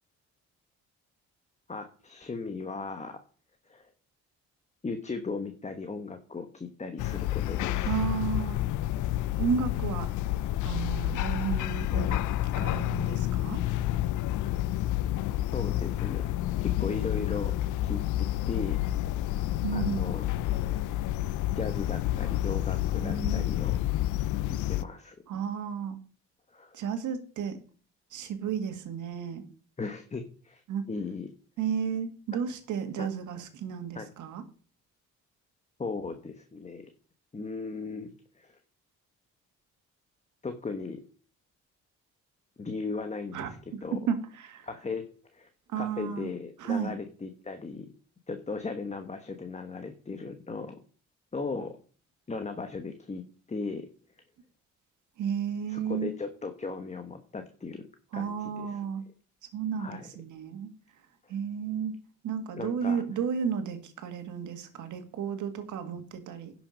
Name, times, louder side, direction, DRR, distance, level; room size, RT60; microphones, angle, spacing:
voice 1, 1.7-3.2 3.7-3.9 4.8-8.0 15.5-16.3 16.8-17.5 17.8-18.8 19.7-20.2 21.5-23.7 24.4-25.2 26.5-26.8 29.8-30.6 30.9-31.3 33.0-33.1 33.9-34.1 35.8-36.9 37.3-38.1 38.3-38.6 40.4-41.0 42.6-43.6 43.8-44.0 44.6-45.0 45.3-45.5 45.8-47.9 48.3-50.8 51.3-51.8 52.3-53.2 53.5-53.9 55.7-57.8 58.1-58.7 59.8-60.1 61.2-61.3 62.6-63.0, left 4 dB, 25° left, 7 dB, 1.1 m, -37 dB
sound 1, 7.0-24.8, left 14 dB, 80° left, 0.5 m, -29 dB
voice 2, 7.9-8.6 9.4-10.1 10.6-13.6 19.6-20.1 22.7-23.5 25.3-26.0 26.7-27.6 28.1-29.4 30.7-30.8 31.6-34.4 43.3-44.7 45.7-46.3 46.6-47.0 55.2-56.1 58.1-59.0 59.5-61.0 61.3-62.0 62.2-66.5, right 7 dB, 75° right, 7 dB, 1.8 m, -33 dB
11.0 x 6.1 x 5.1 m, 0.42 s
cardioid pair, 90°, 30 cm